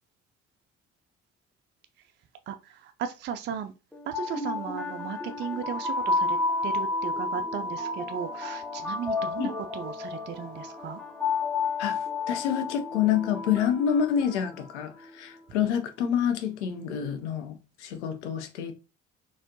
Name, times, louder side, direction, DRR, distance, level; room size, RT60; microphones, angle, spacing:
voice 1, 2.5-3.7 4.1-6.4 6.6-11.0, right 8 dB, 30° right, 0.4 m, -36 dB
sound 1, 3.9-15.0, left 3 dB, ahead, 0.8 m, -31 dB
voice 2, 12.3-18.7, left 8 dB, 70° left, 0.7 m, -27 dB
4.1 x 2.4 x 2.7 m
figure-of-eight pair, 50°, 36 cm